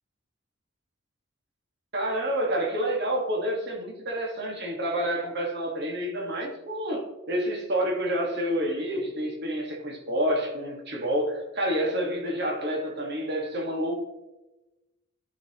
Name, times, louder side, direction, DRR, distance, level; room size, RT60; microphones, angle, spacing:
voice 1, 1.9-14.0, equal, 55° right, 1.8 m, -28 dB
11.5 x 5.5 x 3.1 m
head